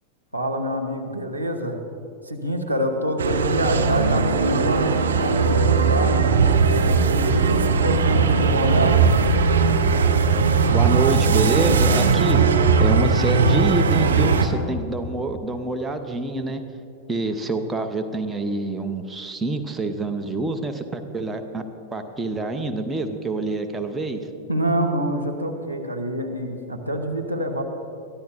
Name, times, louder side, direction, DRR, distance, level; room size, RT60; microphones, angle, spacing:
voice 1, 0.3-1.8 2.2-6.6 7.1-9.0 24.5-27.6, right 1 dB, 90° right, 0 dB, 1.2 m, -26 dB
sound 1, 3.2-14.5, right 4 dB, 70° right, 0.9 m, -19 dB
voice 2, 10.7-12.4 12.8-16.6 17.1-21.6 21.9-24.2, right 2 dB, 10° right, 5 dB, 0.9 m, -26 dB
22.5 x 14.0 x 2.6 m, 2.6 s
figure-of-eight pair, 90°, 0 cm